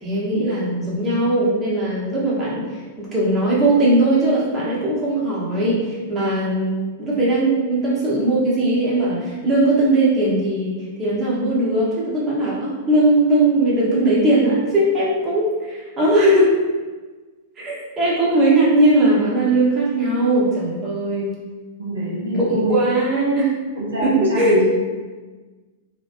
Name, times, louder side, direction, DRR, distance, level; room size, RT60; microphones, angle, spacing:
voice 1, 0.0-16.5 17.6-21.3 22.3-23.5 24.0-24.6, right 1 dB, 25° right, -7 dB, 1.1 m, -19 dB
voice 2, 21.8-22.8 23.8-24.6, equal, 85° right, -7 dB, 1.0 m, -25 dB
3.0 x 2.9 x 2.5 m, 1.3 s
hypercardioid pair, 105°, 0 cm